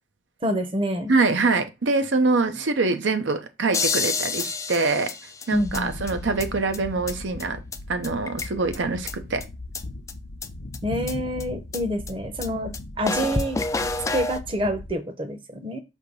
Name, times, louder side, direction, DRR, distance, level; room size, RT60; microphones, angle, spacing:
voice 1, 0.4-1.1 5.5-5.9 10.8-12.7 13.0-13.6 14.1-15.8, equal, 30° right, 0.8 m, -27 dB
voice 2, 1.1-5.1 5.5-7.6 7.9-9.4, right 3 dB, 85° right, 0.7 m, -24 dB
sound 1, 3.7-5.8 6.1-6.2 6.4-6.5 6.7-6.8 7.1-7.2 7.4-7.5 7.7-7.8 8.0-8.8 9.1-9.2 9.4-9.5 9.7-9.8 10.1-10.2 10.4-10.5 10.7-10.8 11.1-11.2 11.4-11.5 11.7-11.8 12.1-12.2 12.4-12.5 12.7-12.8 13.1-14.4, left 4 dB, 15° left, 0.3 m, -28 dB
sound 2, 5.5-14.9, left 2 dB, 65° left, 0.7 m, -38 dB
6.4 x 2.8 x 5.3 m
head